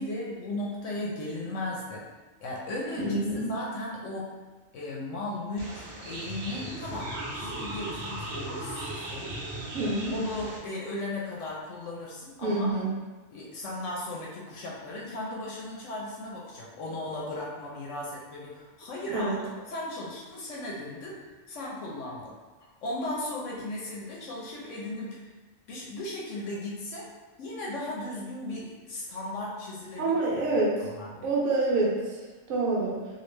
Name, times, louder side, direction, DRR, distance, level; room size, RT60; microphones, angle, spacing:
voice 1, 0.0-2.0 2.4-4.3 4.7-9.3 10.1-12.7 13.3-21.2 21.5-22.4 22.8-25.2 25.7-27.1 27.4-30.2 30.5-31.3, left 1 dB, 70° left, -4 dB, 0.9 m, -36 dB
voice 2, 3.0-3.5 9.7-10.1 12.4-12.9 19.1-19.4 30.0-30.8 31.2-32.2 32.5-32.9, right 2 dB, 80° right, -4 dB, 1.1 m, -27 dB
sound 1, 5.6-10.6, right 1 dB, 60° right, 0.8 m, -37 dB
3.2 x 2.5 x 3.1 m, 1.3 s
omnidirectional pair, 1.4 m